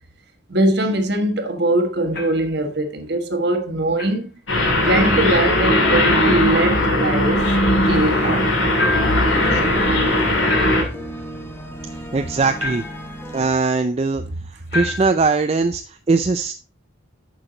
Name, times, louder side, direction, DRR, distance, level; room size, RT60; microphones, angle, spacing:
voice 1, 0.5-4.3 4.7-7.4 7.9-8.5, right 1 dB, 55° right, 1.4 m, -21 dB
sound 1, 2.1-2.5 4.0-4.2 6.0-6.4 8.8-9.3 10.5-11.1 12.6-13.1 14.7-15.2, left 2 dB, 55° left, 2.4 m, -28 dB
sound 2, 4.5-10.8, left 1 dB, 90° left, 2.6 m, -18 dB
sound 3, 7.8-13.5, right 1 dB, 10° left, 1.3 m, -35 dB
voice 2, 12.1-12.8 13.3-14.2 14.7-16.5, right 4 dB, 30° right, 0.4 m, -20 dB
8.9 x 6.4 x 3.8 m
head